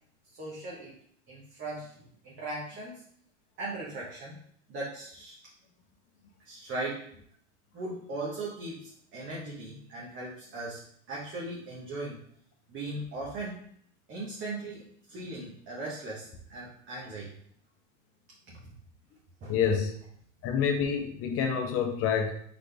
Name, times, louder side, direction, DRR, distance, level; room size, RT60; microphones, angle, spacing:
voice 1, 0.4-1.0 1.3-3.0 3.6-4.4 4.7-5.4 6.4-7.1 7.7-10.8 11.1-12.2 12.7-13.6 14.1-17.4 19.4-19.6, right 2 dB, 35° right, -5 dB, 1.3 m, -38 dB
voice 2, 19.5-20.0 20.4-22.3, left 7 dB, 40° left, 4 dB, 0.9 m, -28 dB
4.1 x 3.8 x 3.4 m, 0.62 s
supercardioid pair, 120°, 36 cm